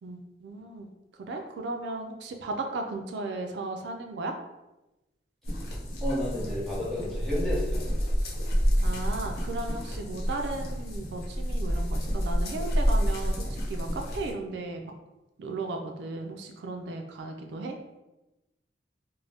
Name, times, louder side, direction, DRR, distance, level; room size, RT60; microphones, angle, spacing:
voice 1, 0.0-0.9 1.2-4.4 8.8-14.8 15.4-17.7, right 2 dB, 75° right, 4 dB, 0.3 m, -35 dB
sound 1, 5.4-14.3, equal, 55° left, 0.5 m, -29 dB
voice 2, 6.0-8.2, left 1 dB, 5° left, -9 dB, 0.9 m, -32 dB
2.5 x 2.0 x 3.3 m, 1.0 s
head